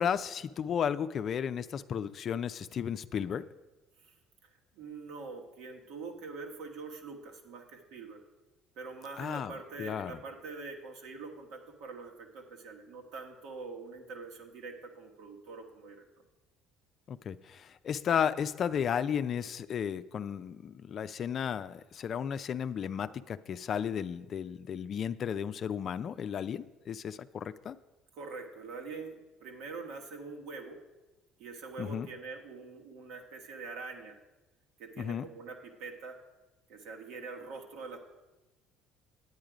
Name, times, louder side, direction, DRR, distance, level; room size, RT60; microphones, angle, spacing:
voice 1, 0.0-3.4 9.2-10.2 17.1-27.8 31.8-32.1 35.0-35.3, left 8 dB, 50° left, 12 dB, 0.5 m, -34 dB
voice 2, 4.4-8.2 8.7-16.0 28.1-30.8 31.4-34.1 34.8-36.2 36.7-38.0, right 4 dB, 75° right, 2 dB, 1.7 m, -44 dB
9.6 x 9.1 x 5.0 m, 1.1 s
supercardioid pair, 80°, 0 cm